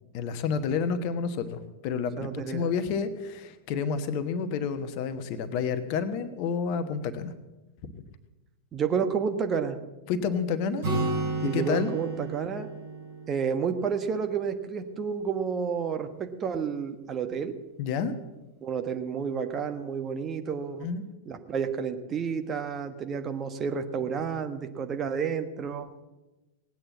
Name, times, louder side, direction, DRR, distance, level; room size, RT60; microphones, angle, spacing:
voice 1, 0.1-7.3 7.8-7.9 10.1-10.9 11.4-11.9 17.8-18.1 20.8-21.0, left 6 dB, 45° left, 10 dB, 1.1 m, -29 dB
voice 2, 2.2-2.7 8.7-9.8 11.4-12.7 13.3-17.5 18.6-20.9 21.3-25.9, right 6 dB, 25° right, 7 dB, 1.2 m, -30 dB
Acoustic guitar, 10.8-14.5, right 2 dB, 65° right, 7.4 m, -33 dB
18.0 x 9.0 x 7.3 m, 1.1 s
figure-of-eight pair, 90°, 0 cm